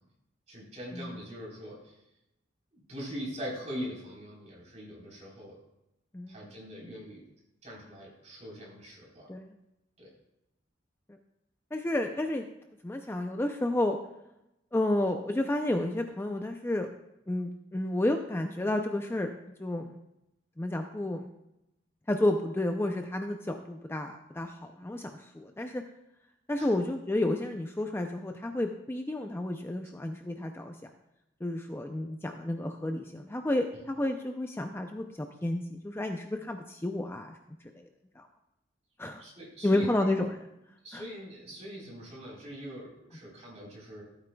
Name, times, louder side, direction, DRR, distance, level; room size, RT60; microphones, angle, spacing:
voice 1, 0.5-1.8 2.7-5.5 6.3-7.2 7.6-9.3 10.0-10.1 26.6-26.7 39.2-39.9 40.8-44.0, equal, 35° right, -4 dB, 3.9 m, -42 dB
voice 2, 11.7-12.4 12.8-14.0 14.7-16.9 17.3-19.3 19.6-20.0 20.6-21.3 22.1-25.8 26.5-30.9 31.4-37.4 38.2-38.3 39.0-39.2 39.6-40.5 40.9-41.0, left 1 dB, 15° left, 5 dB, 0.4 m, -31 dB
15.0 x 8.9 x 2.3 m, 0.88 s
head